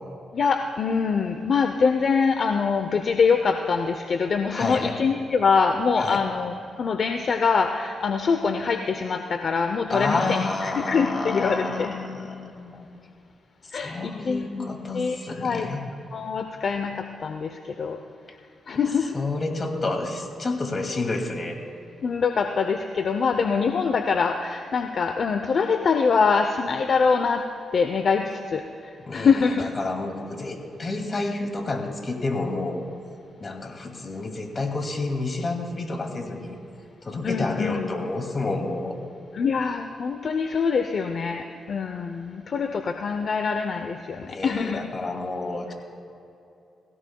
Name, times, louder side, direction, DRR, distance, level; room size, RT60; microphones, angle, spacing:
voice 1, 0.3-11.9 13.7-14.7 14.9-15.7 16.1-18.0 18.7-19.2 22.0-27.4 27.7-29.7 37.2-37.9 39.3-44.8, left 5 dB, 60° left, 6 dB, 0.7 m, -24 dB
voice 2, 4.5-4.9 6.0-6.2 9.9-12.9 13.7-15.8 19.1-21.6 29.1-32.8 33.4-36.6 37.0-39.0 44.2-45.7, left 2 dB, 40° left, 3 dB, 2.4 m, -29 dB
22.5 x 16.5 x 2.3 m, 2.7 s
cardioid pair, 65°, 0 cm